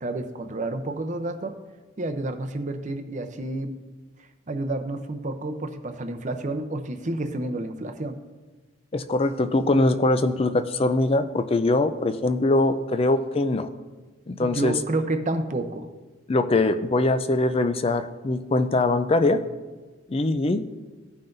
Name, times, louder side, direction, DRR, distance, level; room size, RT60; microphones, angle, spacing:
voice 1, 0.0-1.5 2.0-3.7 4.5-8.2 14.4-15.9, right 2 dB, 40° right, 7 dB, 0.6 m, -30 dB
voice 2, 8.9-13.7 14.3-14.8 16.3-19.4 20.1-20.6, left 2 dB, 30° left, 10 dB, 0.4 m, -22 dB
16.0 x 5.7 x 2.6 m, 1.3 s
head